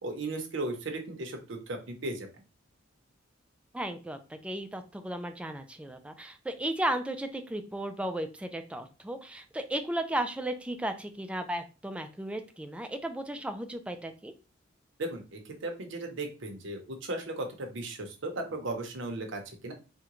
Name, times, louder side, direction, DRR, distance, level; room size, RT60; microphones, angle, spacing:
voice 1, 0.0-2.3 15.0-19.7, right 2 dB, 70° right, 4 dB, 0.7 m, -36 dB
voice 2, 3.7-14.3, right 1 dB, 5° right, 7 dB, 0.3 m, -35 dB
3.6 x 2.1 x 2.9 m, 0.32 s
head